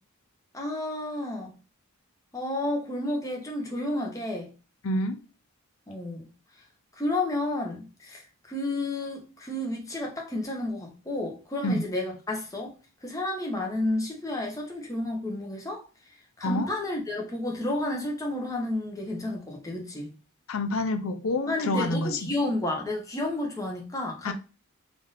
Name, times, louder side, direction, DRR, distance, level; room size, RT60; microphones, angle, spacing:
voice 1, 0.5-1.5 2.3-4.5 5.9-6.3 7.0-8.2 8.5-12.8 13.0-15.8 16.4-20.1 21.5-24.3, left 1 dB, 15° left, 0.8 m, -31 dB
voice 2, 4.8-5.2 11.6-11.8 16.4-16.7 20.5-22.3 24.2-24.3, left 1 dB, 70° left, 0.5 m, -27 dB
3.6 x 2.5 x 3.9 m
head